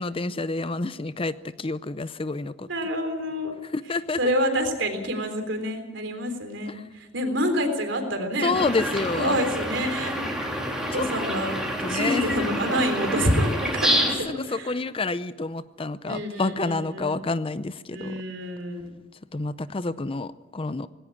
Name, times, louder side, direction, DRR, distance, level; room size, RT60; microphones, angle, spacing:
voice 1, 0.0-2.7 3.7-4.2 6.7-6.8 8.4-9.4 10.9-11.1 11.8-12.3 14.2-18.2 19.3-20.9, left 3 dB, 30° left, 15 dB, 0.6 m, -29 dB
voice 2, 2.7-3.6 4.2-8.6 9.2-10.2 10.9-11.6 11.9-14.7 16.0-17.2 17.9-18.8, equal, 70° right, 6 dB, 3.6 m, -27 dB
sound 1, 8.5-14.2, right 1 dB, 5° right, 3.5 m, -28 dB
19.0 x 17.5 x 8.7 m, 1.1 s
head